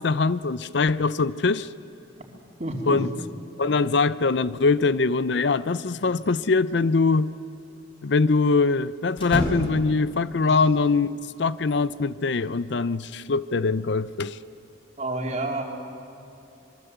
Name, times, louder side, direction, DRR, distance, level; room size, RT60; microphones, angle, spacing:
voice 1, 0.0-1.7 2.9-3.1 3.6-7.3 8.0-14.4, left 4 dB, 60° left, 0.5 m, -23 dB
voice 2, 2.6-3.0 3.6-3.8 5.9-6.0 10.4-10.6 15.0-15.6, right 2 dB, 35° right, 3.3 m, -30 dB
sound 1, 6.2-6.9 7.1-7.2 9.1-10.0 11.6-12.5, equal, 25° left, 4.5 m, -31 dB
26.5 x 22.5 x 8.1 m
head